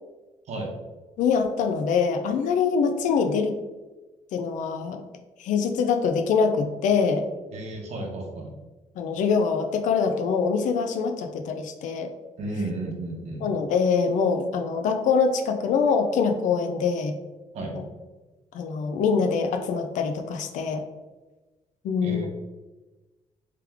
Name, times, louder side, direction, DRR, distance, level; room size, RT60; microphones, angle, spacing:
voice 1, 1.2-3.5 4.3-5.0 5.4-7.3 9.0-12.1 13.4-17.1 17.7-17.8 18.5-20.8 21.8-22.3, left 5 dB, 90° left, 6 dB, 0.5 m, -24 dB
voice 2, 7.5-8.5 12.4-13.5 17.5-17.8 22.0-22.3, right 2 dB, 60° right, 1 dB, 0.9 m, -33 dB
3.4 x 3.3 x 3.4 m, 1.2 s
cardioid pair, 175°, 13 cm